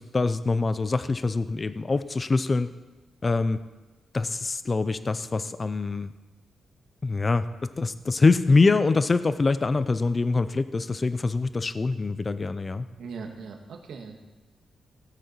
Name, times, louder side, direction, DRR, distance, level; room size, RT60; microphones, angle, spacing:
voice 1, 0.0-2.7 3.2-3.6 4.1-6.1 7.0-7.5 7.8-12.9, left 3 dB, 25° left, 13 dB, 0.4 m, -24 dB
voice 2, 13.0-14.2, right 5 dB, 75° right, 2 dB, 1.7 m, -39 dB
16.5 x 8.3 x 4.5 m, 1.2 s
wide cardioid pair, 180°, 0 cm